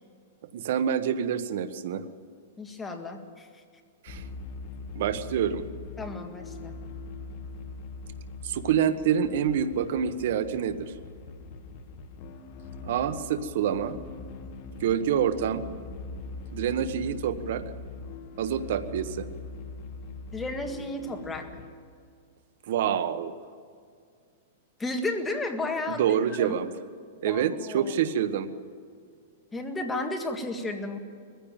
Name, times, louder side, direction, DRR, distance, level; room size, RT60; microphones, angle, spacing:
voice 1, 0.5-2.0 4.0-4.2 4.9-5.6 8.4-10.9 12.8-14.0 14.8-15.6 16.5-17.6 18.4-19.3 22.7-23.3 25.9-26.7 27.2-28.5, right 9 dB, 60° right, 11 dB, 1.3 m, -27 dB
voice 2, 2.6-3.6 6.0-6.8 20.3-21.5 24.8-26.6 27.2-27.9 29.5-31.0, left 2 dB, 10° left, 4 dB, 1.8 m, -33 dB
sound 1, 4.1-21.7, left 4 dB, 40° left, 1.7 m, -41 dB
21.0 x 15.5 x 9.1 m, 2.2 s
supercardioid pair, 155°, 0 cm